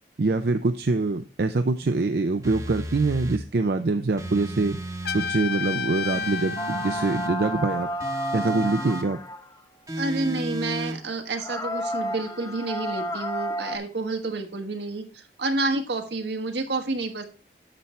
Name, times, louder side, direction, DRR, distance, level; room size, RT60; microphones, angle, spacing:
voice 1, 0.2-4.8 5.1-7.9 8.3-9.2, right 3 dB, 60° right, 8 dB, 0.5 m, -24 dB
sound 1, 2.4-3.4 4.2-5.4 6.1-7.3 8.0-9.1 9.9-11.0, right 1 dB, 20° right, 0.9 m, -34 dB
Trumpet, 5.1-7.9, left 5 dB, 65° left, 0.5 m, -32 dB
sound 2, 6.6-9.6 10.5-10.6 11.0-11.1 11.3-13.8, equal, 20° left, 0.8 m, -31 dB
voice 2, 10.0-17.2, right 2 dB, 75° right, 6 dB, 1.3 m, -29 dB
10.0 x 6.9 x 3.1 m, 0.35 s
head